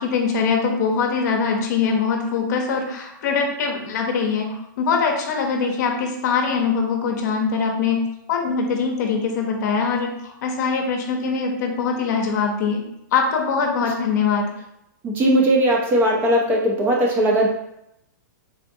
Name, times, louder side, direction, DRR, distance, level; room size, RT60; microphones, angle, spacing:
voice 1, 0.0-12.8 13.1-14.5, left 5 dB, 60° left, 2 dB, 0.6 m, -22 dB
voice 2, 15.0-17.5, right 1 dB, 20° right, -1 dB, 0.4 m, -18 dB
3.6 x 2.4 x 2.6 m, 0.82 s
hypercardioid pair, 160°, 11 cm